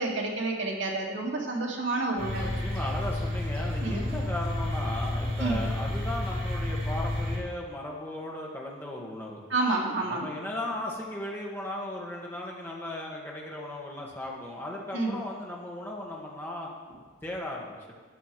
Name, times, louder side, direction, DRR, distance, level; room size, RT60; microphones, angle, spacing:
voice 1, 0.0-2.5 3.8-4.0 5.4-5.6 9.5-10.3 14.9-15.2, right 2 dB, 65° right, -1 dB, 2.0 m, -29 dB
sound 1, 2.2-7.4, left 1 dB, 45° right, 3.5 m, -31 dB
voice 2, 2.4-9.4 10.0-16.7 17.2-17.8, left 1 dB, 10° left, -2 dB, 1.7 m, -36 dB
12.5 x 8.2 x 4.6 m, 1.4 s
head